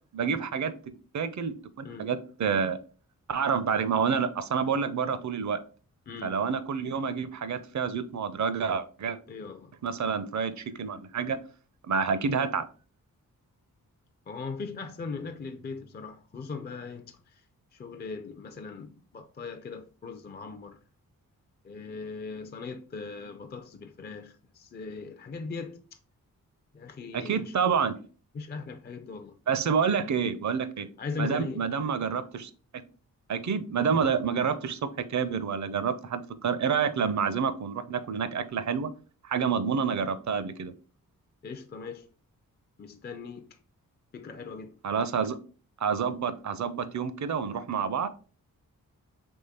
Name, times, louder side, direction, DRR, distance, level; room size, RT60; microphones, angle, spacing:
voice 1, 0.1-0.7 1.1-2.8 3.3-5.6 6.2-9.2 9.8-11.4 11.8-12.7 27.1-28.0 29.5-30.9 31.2-32.5 33.3-38.9 39.2-40.7 44.8-45.4 45.8-48.1, right 6 dB, 50° right, 0.6 m, -28 dB
voice 2, 6.1-6.5 9.3-9.7 14.3-17.4 17.7-20.8 21.6-25.8 26.7-27.6 28.3-29.4 31.0-31.7 41.4-42.1 42.8-43.6 44.1-44.8, left 4 dB, 30° left, 0.5 m, -39 dB
3.7 x 3.1 x 4.2 m
cardioid pair, 55°, 35 cm